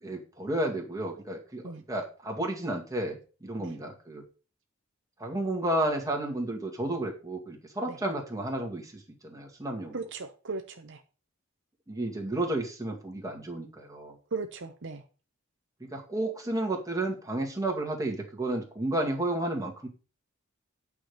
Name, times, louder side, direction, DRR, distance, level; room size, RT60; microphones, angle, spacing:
voice 1, 0.0-4.2 5.2-10.0 11.9-14.2 15.8-19.9, right 1 dB, 15° right, 0 dB, 2.1 m, -32 dB
voice 2, 9.9-11.0 14.3-15.0, right 4 dB, 60° right, 7 dB, 0.8 m, -37 dB
9.1 x 5.0 x 6.5 m, 0.36 s
head